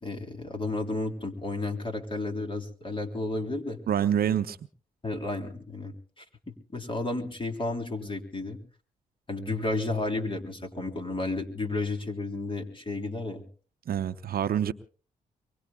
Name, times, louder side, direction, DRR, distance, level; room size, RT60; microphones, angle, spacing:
voice 1, 0.0-3.8 5.0-8.6 9.3-13.4, left 2 dB, 30° left, 4 dB, 3.6 m, -32 dB
voice 2, 3.9-4.6 13.9-14.7, right 9 dB, 65° right, 12 dB, 0.8 m, -26 dB
24.0 x 23.5 x 2.3 m, 0.40 s
supercardioid pair, 50°, 17 cm